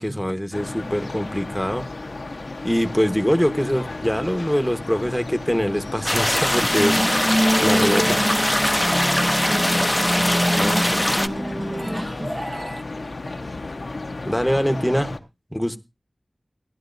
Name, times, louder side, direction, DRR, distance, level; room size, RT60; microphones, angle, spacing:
voice 1, 0.0-1.9 2.6-7.0 7.6-8.2 10.6-10.7 14.2-15.1 15.5-15.8, equal, ahead, 9 dB, 1.2 m, -23 dB
sound 1, 0.5-15.2, left 2 dB, 70° left, 0.9 m, -34 dB
sound 2, 6.1-11.3, left 1 dB, 15° left, 0.8 m, -21 dB
sound 3, 6.5-12.8, equal, 20° right, 0.9 m, -25 dB
voice 2, 10.2-10.8 11.1-13.7, right 1 dB, 70° right, 0 dB, 6.5 m, -44 dB
17.0 x 11.0 x 2.6 m, 0.25 s
wide cardioid pair, 50°, 0 cm